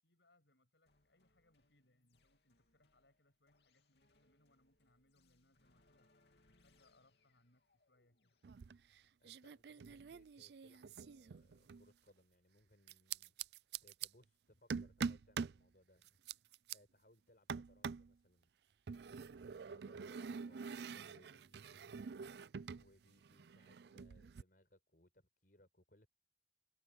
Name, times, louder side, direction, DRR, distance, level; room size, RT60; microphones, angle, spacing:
voice 1, 0.0-8.4, left 2 dB, 85° left, 6.9 m, -75 dB
sound 1, 0.9-10.6, left 2 dB, 70° left, 2.8 m, -76 dB
sound 2, 8.4-9.0 9.2-11.9 12.9-14.1 14.7-15.6 16.0-16.8 17.5-18.1 18.9-22.9 23.1-24.4, right 6 dB, 70° right, 0.4 m, -45 dB
voice 2, 9.2-13.5 13.8-16.2 16.7-18.5 19.2-22.0 22.8-26.1, left 1 dB, 55° left, 5.7 m, -69 dB
head